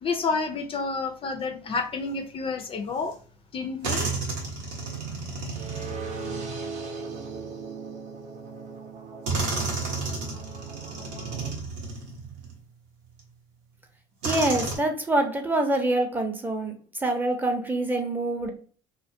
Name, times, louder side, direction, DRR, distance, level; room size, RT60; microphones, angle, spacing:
voice 1, 0.0-3.2 3.5-4.1, left 4 dB, 35° left, 0.4 m, -29 dB
sound 1, 3.1-3.2 3.8-7.5 8.4-8.5 9.3-12.6 13.2-13.3 14.2-14.8, right 3 dB, 85° right, 0.8 m, -32 dB
sound 2, 5.5-11.5, right 4 dB, 55° right, 0.7 m, -39 dB
voice 2, 14.2-16.7 17.0-18.5, right 2 dB, 10° right, 0.6 m, -25 dB
2.3 x 2.1 x 2.6 m
supercardioid pair, 80°, 15 cm